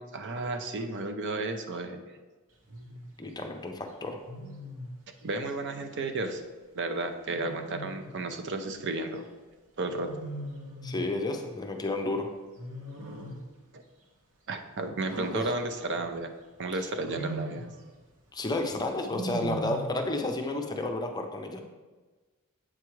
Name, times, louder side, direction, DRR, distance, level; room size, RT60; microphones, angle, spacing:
voice 1, 0.0-2.2 5.2-6.4 6.7-9.2 9.8-10.1 13.7-13.8 14.5-16.3 16.6-17.7, right 2 dB, 55° right, 7 dB, 0.5 m, -33 dB
Wild animals, 2.7-3.0 4.3-5.0 7.3-8.2 10.0-11.1 12.6-13.5 15.1-16.2 16.9-17.8 19.1-20.1, right 1 dB, 85° right, 1.0 m, -39 dB
voice 2, 3.2-4.2 10.8-12.3 15.3-15.5 18.3-21.6, left 2 dB, 20° left, 3 dB, 0.5 m, -31 dB
7.8 x 4.6 x 3.1 m, 1.3 s
head